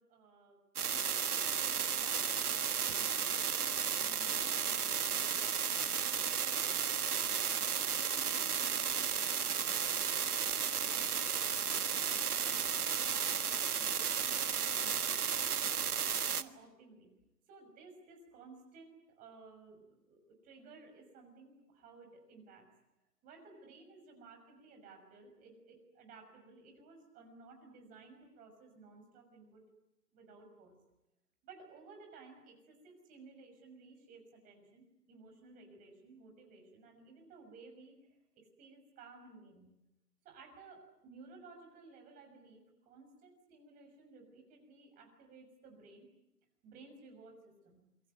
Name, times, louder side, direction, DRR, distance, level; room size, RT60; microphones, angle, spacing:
voice 1, 0.0-7.0 7.8-10.3 10.8-11.1 11.8-15.8 16.3-17.1 17.5-22.7 23.2-29.6 30.1-30.8 31.4-39.7 40.2-46.1 46.6-47.8, right 4 dB, 15° right, 3 dB, 6.3 m, -57 dB
sound 1, 0.8-16.4, right 7 dB, 65° right, 1.6 m, -33 dB
28.0 x 22.5 x 9.4 m, 0.89 s
hypercardioid pair, 150°, 49 cm